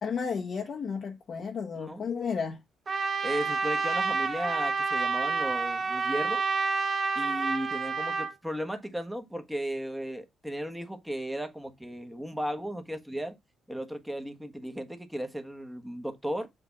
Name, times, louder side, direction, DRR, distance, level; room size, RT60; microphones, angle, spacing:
voice 1, 0.0-2.6, left 6 dB, 55° left, 1.2 m, -33 dB
voice 2, 1.7-2.0 3.2-6.4 7.1-13.4 13.7-16.5, equal, 5° right, 1.4 m, -35 dB
Trumpet, 2.9-8.3, right 5 dB, 40° right, 1.4 m, -29 dB
7.9 x 2.8 x 6.0 m
cardioid pair, 90°, 0 cm